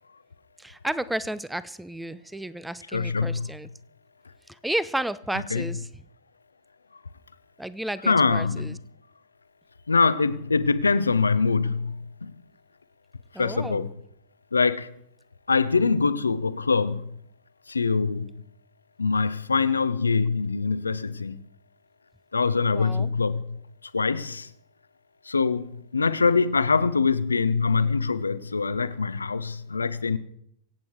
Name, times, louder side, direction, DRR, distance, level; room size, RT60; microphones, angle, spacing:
voice 1, 0.6-3.7 4.6-5.9 7.6-8.8 13.3-13.9 22.6-23.1, right 1 dB, 5° right, 0.7 m, -32 dB
voice 2, 2.9-3.5 5.5-5.7 8.0-8.7 9.9-12.3 13.4-13.9 14.5-14.9 15.5-17.0 17.7-18.3 19.0-21.4 22.3-23.4 23.9-24.5 25.3-30.2, left 4 dB, 75° left, 0.8 m, -24 dB
25.0 x 8.8 x 4.6 m
figure-of-eight pair, 90°, 0 cm